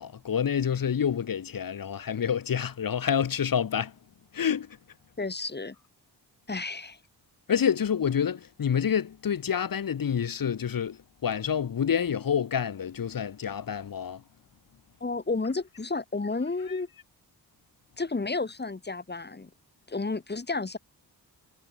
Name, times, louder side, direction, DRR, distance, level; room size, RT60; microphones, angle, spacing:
voice 1, 0.0-3.9 4.3-4.8 6.5-6.6 7.5-14.2 16.7-16.8, left 8 dB, 55° left, 3.0 m, -28 dB
voice 2, 5.2-5.7 6.5-7.0 15.0-16.9 18.0-19.5 19.9-20.8, left 3 dB, 25° left, 7.9 m, -31 dB
cardioid pair, 115°, 40 cm